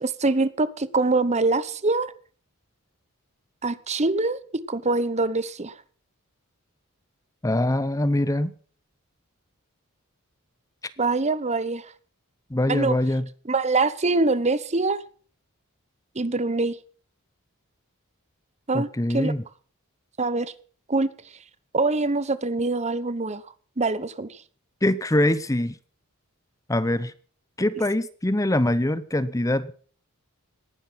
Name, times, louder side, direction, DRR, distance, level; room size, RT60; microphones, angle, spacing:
voice 1, 0.0-2.1 3.6-5.8 11.0-11.9 12.7-13.0 13.5-15.0 16.1-16.8 18.7-19.3 20.2-20.5 20.9-21.1 21.7-23.4 23.8-24.4, right 3 dB, 30° right, 1.0 m, -24 dB
voice 2, 7.4-8.5 12.5-13.3 18.7-19.4 24.8-25.8 26.7-27.1 27.6-29.7, left 1 dB, 15° left, 0.7 m, -23 dB
19.0 x 10.5 x 5.8 m
head